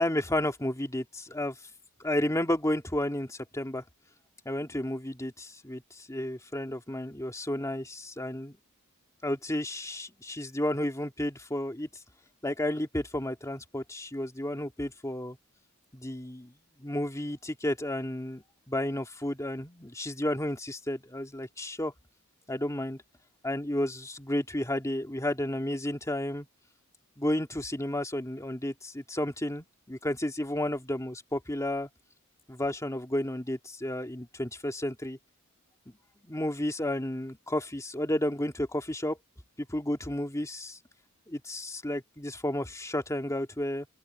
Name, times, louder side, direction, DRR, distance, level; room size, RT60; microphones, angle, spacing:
voice 1, 0.0-1.6 2.0-3.8 4.5-8.6 9.2-11.9 12.4-15.4 15.9-16.5 16.8-21.9 22.5-23.0 23.4-26.5 27.2-31.9 32.5-35.2 35.9-36.0 36.2-39.2 39.6-40.8 41.3-43.9, left 1 dB, 15° left, 2.5 m, -32 dB
open air
head